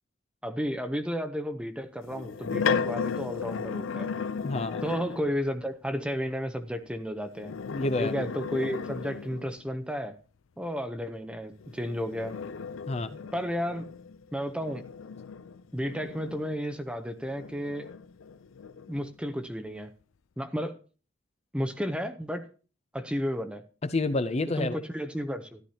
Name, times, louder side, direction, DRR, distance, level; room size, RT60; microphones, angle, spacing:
voice 1, 0.4-4.1 4.8-7.5 8.0-10.1 10.6-12.3 13.3-13.8 14.3-14.8 15.7-17.9 18.9-19.9 20.4-20.8 21.5-22.5 22.9-23.6 24.6-25.6, equal, 5° right, 8 dB, 0.7 m, -32 dB
sound 1, 2.0-5.4 7.3-9.6 11.6-16.8 17.3-19.1, left 6 dB, 80° left, 0.5 m, -35 dB
voice 2, 4.4-4.8 7.7-8.2 12.9-13.2 23.9-24.8, left 2 dB, 30° left, 11 dB, 0.5 m, -29 dB
13.5 x 11.5 x 2.8 m, 0.37 s
head